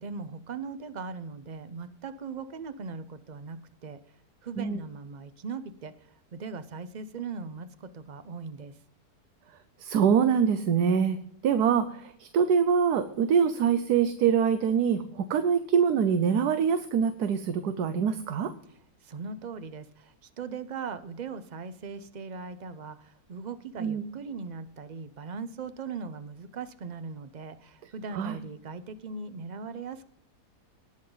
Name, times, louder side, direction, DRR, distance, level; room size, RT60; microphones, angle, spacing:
voice 1, 0.0-4.0 4.4-8.7 19.0-30.0, right 5 dB, 60° right, 12 dB, 0.4 m, -39 dB
voice 2, 9.8-18.5 23.8-24.0 28.1-28.4, right 7 dB, 80° right, 10 dB, 1.3 m, -24 dB
19.0 x 7.4 x 3.9 m, 0.73 s
omnidirectional pair, 1.7 m